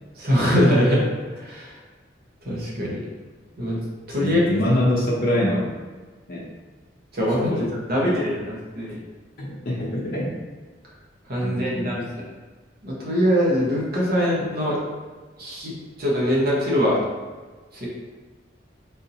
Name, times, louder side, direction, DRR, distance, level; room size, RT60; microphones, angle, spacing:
voice 1, 0.2-1.0 1.4-1.7 2.4-3.0 3.6-3.8 4.1-4.4 7.1-7.5 7.9-9.0 11.3-12.0 12.8-14.8 15.4-15.7 16.0-17.0 17.7-17.9, equal, 55° right, -5 dB, 1.0 m, -22 dB
voice 2, 4.2-5.7 6.3-6.5 7.5-7.7 8.0-8.1 9.4-10.4 11.4-11.9, left 1 dB, 50° left, -6 dB, 0.6 m, -24 dB
3.6 x 2.6 x 2.7 m, 1.4 s
head